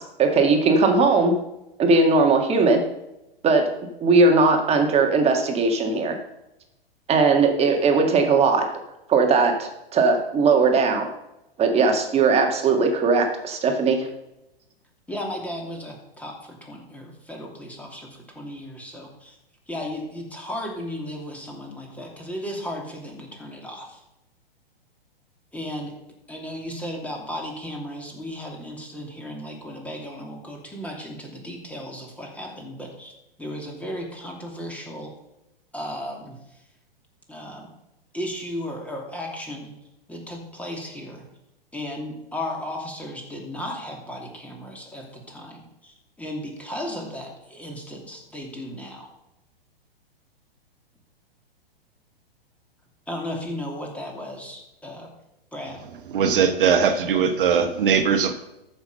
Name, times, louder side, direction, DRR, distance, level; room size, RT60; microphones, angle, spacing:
voice 1, 0.0-1.3 1.8-2.8 3.4-3.7 4.0-6.2 7.1-8.7 9.1-11.1 11.6-14.1, right 4 dB, 20° right, 3 dB, 1.9 m, -19 dB
voice 2, 15.1-19.3 19.7-24.0 25.5-25.9 26.3-33.1 33.4-35.1 35.7-36.4 37.3-37.7 38.1-39.7 40.1-41.2 41.7-49.1 53.1-55.1 55.5-55.8, left 1 dB, 5° left, 0 dB, 2.7 m, -35 dB
voice 3, 56.1-58.3, right 6 dB, 60° right, 8 dB, 1.2 m, -20 dB
13.5 x 6.2 x 6.7 m, 0.90 s
figure-of-eight pair, 110°, 30 cm